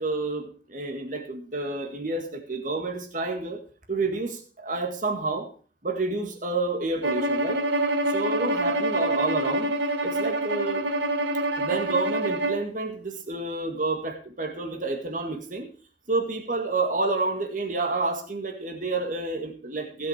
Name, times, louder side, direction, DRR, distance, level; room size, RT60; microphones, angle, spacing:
voice 1, 0.0-3.6 3.9-5.5 5.8-7.6 8.1-10.9 11.6-15.7 16.1-20.1, right 3 dB, 40° right, 4 dB, 1.9 m, -29 dB
Bowed string instrument, 7.0-12.6, right 1 dB, 65° right, 1.7 m, -26 dB
16.5 x 7.5 x 5.0 m, 0.41 s
head